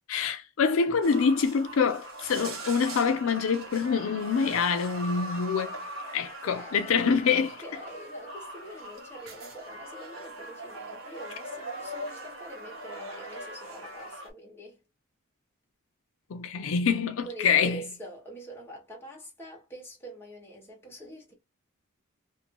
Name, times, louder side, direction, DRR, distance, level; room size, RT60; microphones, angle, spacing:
voice 1, 0.1-5.7 6.1-7.5 16.3-17.8, left 6 dB, 75° left, 0.4 m, -25 dB
sound 1, 1.0-14.3, right 1 dB, 75° right, 1.0 m, -41 dB
voice 2, 6.4-14.8 17.2-21.3, right 1 dB, 10° left, 1.3 m, -45 dB
2.7 x 2.6 x 2.9 m
head